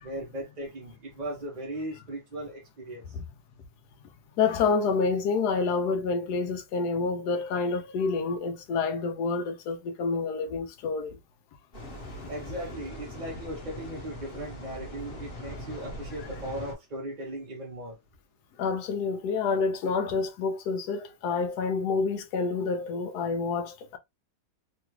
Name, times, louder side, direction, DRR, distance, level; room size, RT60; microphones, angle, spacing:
voice 1, 0.0-3.0 12.3-18.0, right 1 dB, 35° right, 0.7 m, -38 dB
voice 2, 4.4-11.2 18.6-24.0, left 4 dB, 80° left, 1.1 m, -28 dB
sound 1, 11.7-16.7, left 1 dB, 35° left, 1.2 m, -41 dB
3.1 x 2.4 x 2.9 m
omnidirectional pair, 1.7 m